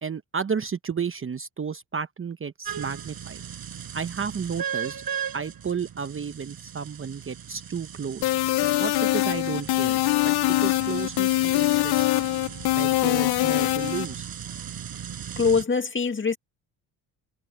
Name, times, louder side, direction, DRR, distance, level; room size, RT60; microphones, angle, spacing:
voice 1, 0.0-3.4 3.9-5.0 5.3-8.3 8.8-12.2 12.7-14.3, right 6 dB, 30° right, 0.9 m, -32 dB
sound 1, 2.6-15.6, right 8 dB, 55° right, 5.4 m, -37 dB
sound 2, 8.2-14.0, left 18 dB, 60° left, 0.6 m, -23 dB
voice 2, 15.4-16.4, left 5 dB, 25° left, 2.0 m, -23 dB
supercardioid pair, 75°, 43 cm